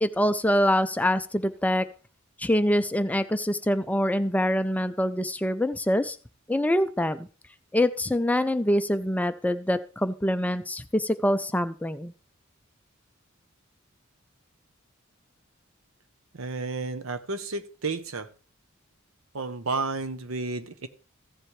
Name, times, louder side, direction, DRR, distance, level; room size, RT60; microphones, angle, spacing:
voice 1, 0.0-1.9 2.4-6.2 6.5-7.3 7.7-12.1, left 1 dB, 5° left, 11 dB, 0.4 m, -25 dB
voice 2, 16.3-18.3 19.3-20.9, right 3 dB, 70° right, 11 dB, 0.8 m, -31 dB
15.0 x 7.3 x 3.2 m, 0.36 s
head